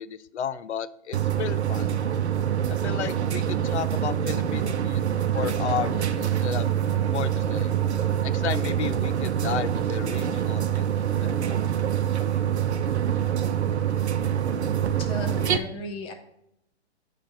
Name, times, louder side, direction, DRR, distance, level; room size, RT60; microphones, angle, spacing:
voice 1, 0.0-1.9 2.8-5.0 5.3-6.7 7.1-7.7 8.2-10.9 11.2-11.7 12.2-12.4, left 9 dB, 80° left, 16 dB, 0.5 m, -33 dB
sound 1, 1.1-15.6, right 9 dB, 75° right, 0.7 m, -25 dB
voice 2, 15.0-16.1, left 2 dB, 15° left, 4 dB, 0.8 m, -35 dB
8.6 x 3.3 x 5.5 m, 0.77 s
hypercardioid pair, 140°, 34 cm